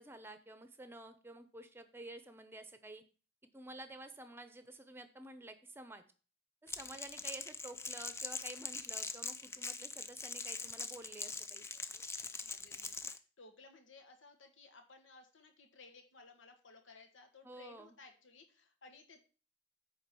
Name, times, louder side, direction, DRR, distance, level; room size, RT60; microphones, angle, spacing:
voice 1, 0.0-3.0 3.5-6.0 6.6-11.7 17.4-18.0, right 2 dB, 10° right, 10 dB, 0.8 m, -51 dB
Crackle, 6.7-13.2, left 4 dB, 15° left, 0.4 m, -43 dB
voice 2, 12.3-19.2, left 3 dB, 85° left, 5 dB, 1.5 m, -59 dB
9.2 x 3.9 x 6.9 m, 0.37 s
head